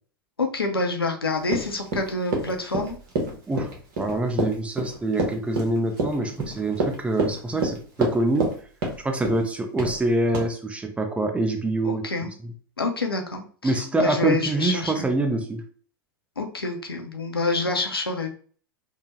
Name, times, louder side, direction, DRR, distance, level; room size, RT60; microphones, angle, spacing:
voice 1, 0.4-3.0 11.8-12.3 12.8-15.1 16.4-18.3, left 3 dB, 85° left, 3 dB, 0.6 m, -27 dB
Run, 1.5-8.6 8.8-9.4 9.8-10.0 10.3-10.5, right 2 dB, 50° right, 1.0 m, -27 dB
voice 2, 4.0-8.5 9.0-12.1 12.4-12.5 13.6-15.6, right 2 dB, 10° right, 5 dB, 0.5 m, -25 dB
3.4 x 2.1 x 2.9 m, 0.43 s
figure-of-eight pair, 95°, 12 cm